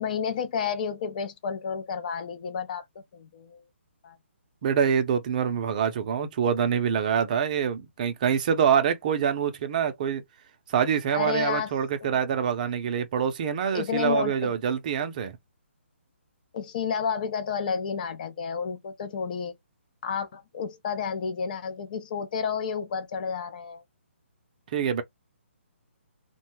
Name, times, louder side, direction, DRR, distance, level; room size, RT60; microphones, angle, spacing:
voice 1, 0.0-2.8 3.1-3.6 4.0-4.2 11.1-11.7 12.0-12.2 13.7-14.5 16.5-19.6 20.0-23.8, left 6 dB, 40° left, 0.4 m, -31 dB
voice 2, 4.6-10.2 10.7-15.3 24.7-25.0, right 7 dB, 35° right, 0.5 m, -25 dB
2.6 x 2.2 x 3.0 m
hypercardioid pair, 155°, 7 cm